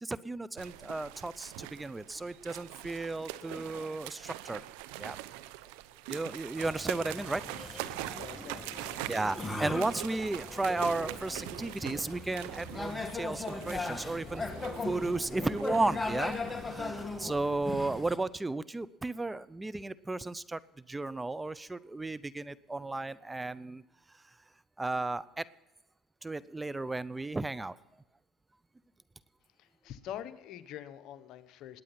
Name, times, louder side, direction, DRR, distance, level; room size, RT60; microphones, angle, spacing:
voice 1, 0.0-4.6 5.0-5.2 6.1-7.4 7.9-8.6 9.1-20.6 20.9-23.8 24.8-25.4 26.2-27.8, right 2 dB, 15° right, 17 dB, 0.6 m, -34 dB
sound 1, 0.6-17.6, right 15 dB, 85° right, 0.7 m, -44 dB
sound 2, 6.6-18.2, left 3 dB, 15° left, 1.8 m, -39 dB
voice 2, 8.1-9.1 29.6-31.8, left 10 dB, 65° left, 11 dB, 1.1 m, -45 dB
20.0 x 9.0 x 5.8 m, 1.1 s
supercardioid pair, 90°, 0 cm